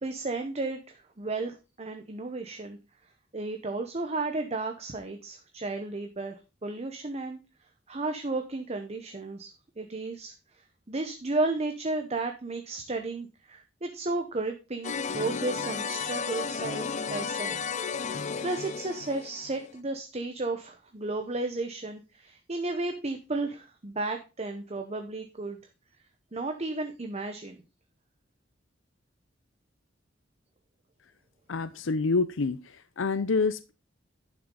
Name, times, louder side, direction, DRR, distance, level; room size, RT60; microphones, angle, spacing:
voice 1, 0.0-2.8 3.3-7.4 7.9-17.6 18.1-25.6 26.3-27.6, right 2 dB, 35° right, 5 dB, 0.9 m, -33 dB
sound 1, 14.8-19.7, left 5 dB, 40° left, 0.5 m, -33 dB
voice 2, 31.5-32.6 33.0-33.7, left 4 dB, 85° left, 13 dB, 0.6 m, -27 dB
11.0 x 6.1 x 3.8 m, 0.29 s
head